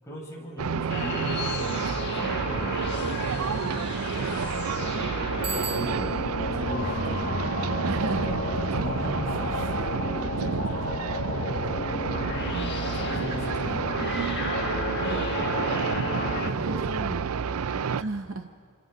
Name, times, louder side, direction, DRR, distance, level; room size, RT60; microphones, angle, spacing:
voice 1, 0.0-4.4 5.3-6.2 6.5-7.4 8.0-12.3 12.8-14.2 14.8-15.5 16.3-17.9, equal, 15° left, -4 dB, 6.6 m, -39 dB
sound 1, 0.6-18.0, right 6 dB, 85° right, 0.5 m, -30 dB
sound 2, 0.9-16.5, left 3 dB, 50° left, 1.7 m, -33 dB
Bicycle bell, 5.4-6.4, right 4 dB, 25° right, 0.8 m, -36 dB
voice 2, 7.8-8.4 12.5-13.2 15.0-15.2 16.6-17.3 18.0-18.5, right 3 dB, 60° right, 7 dB, 0.8 m, -34 dB
28.5 x 26.0 x 5.2 m, 2.3 s
head